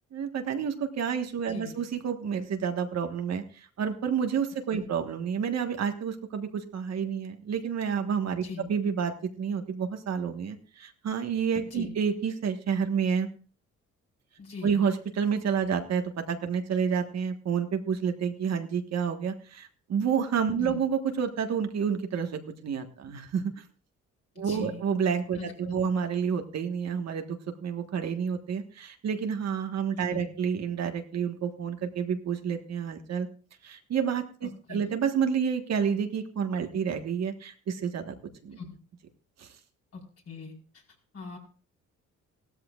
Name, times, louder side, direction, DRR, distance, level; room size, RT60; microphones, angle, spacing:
voice 1, 0.1-13.3 14.6-23.6 24.4-33.3 33.6-38.2 38.4-38.6 39.4-39.5, right 7 dB, 60° right, 6 dB, 1.5 m, -29 dB
voice 2, 1.5-1.8 4.7-4.8 8.4-8.7 11.6-11.9 14.4-14.7 20.6-20.8 24.3-24.8 25.3-25.8 30.1-30.3 34.4-34.9 38.5-38.7 39.9-40.8 41.1-41.4, left 4 dB, 50° left, -1 dB, 4.6 m, -41 dB
17.0 x 13.0 x 2.4 m, 0.40 s
cardioid pair, 90°, 30 cm